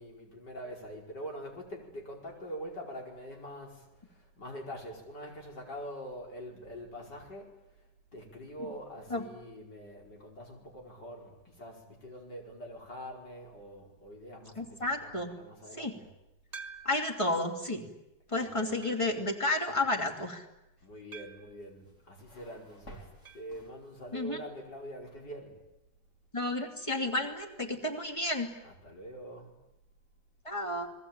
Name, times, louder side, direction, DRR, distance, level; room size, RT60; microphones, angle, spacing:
voice 1, 0.0-7.6 8.1-16.1 18.3-18.9 20.8-25.6 28.6-29.5, equal, 90° left, 0 dB, 5.8 m, -45 dB
voice 2, 14.6-15.3 15.8-15.9 16.8-17.9 18.3-20.4 24.1-24.4 26.3-28.5 30.4-30.9, left 2 dB, 15° left, 3 dB, 3.0 m, -31 dB
sound 1, 16.5-17.2 17.8-17.9 18.8-19.2 21.1-21.6 23.2-23.5 23.8-23.9 24.2-24.3 26.3-26.4, right 5 dB, 25° right, 2.0 m, -48 dB
sound 2, 21.6-24.3, right 1 dB, 45° left, 4.4 m, -54 dB
29.5 x 21.0 x 9.0 m, 0.90 s
omnidirectional pair, 1.8 m